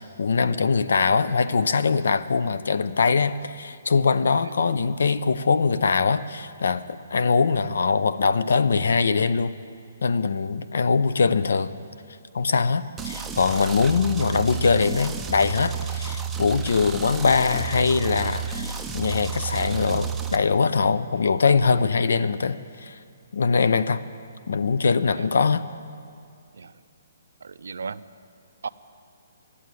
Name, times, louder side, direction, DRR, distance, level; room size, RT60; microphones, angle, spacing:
voice 1, 0.2-9.5 10.0-11.7 12.3-23.0 23.3-24.0 24.5-25.7, left 5 dB, 80° left, 14 dB, 0.6 m, -22 dB
sound 1, 13.0-20.4, right 7 dB, 5° right, 0.4 m, -31 dB
voice 2, 27.4-28.1 28.6-28.7, right 5 dB, 85° right, 14 dB, 0.4 m, -36 dB
12.0 x 8.5 x 9.2 m, 2.3 s
hypercardioid pair, 170°, 0 cm